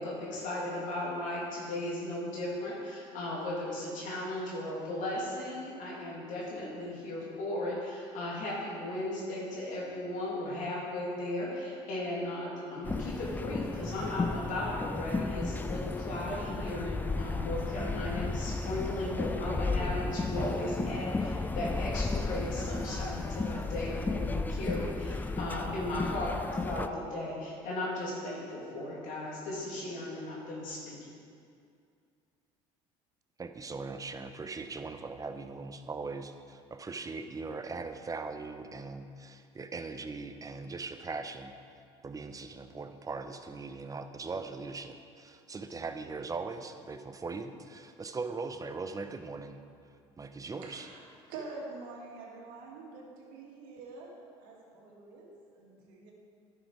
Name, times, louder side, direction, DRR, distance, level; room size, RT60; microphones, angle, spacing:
voice 1, 0.0-31.0, left 1 dB, 70° left, -5 dB, 2.6 m, -36 dB
sound 1, 12.8-26.9, left 3 dB, 15° left, 0.4 m, -34 dB
voice 2, 33.4-41.5 42.0-49.6 50.2-50.9, right 4 dB, 25° right, 8 dB, 0.7 m, -40 dB
voice 3, 50.6-56.1, right 3 dB, 75° right, -2 dB, 2.1 m, -46 dB
10.0 x 6.5 x 4.7 m, 2.3 s
supercardioid pair, 75°, 14 cm